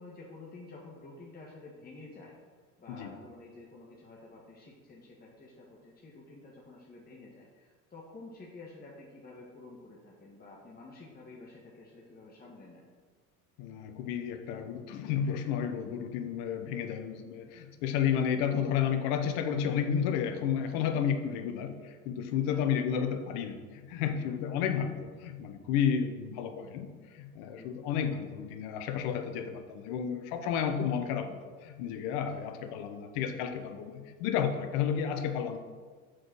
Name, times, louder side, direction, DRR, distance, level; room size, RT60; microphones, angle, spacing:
voice 1, 0.0-2.3 2.8-12.9 22.4-22.6 27.6-27.8 32.3-32.4, left 3 dB, 20° left, -3 dB, 1.3 m, -50 dB
voice 2, 13.6-26.9 27.1-35.6, left 8 dB, 65° left, 8 dB, 1.0 m, -32 dB
6.3 x 4.8 x 6.1 m, 1.5 s
hypercardioid pair, 80°, 42 cm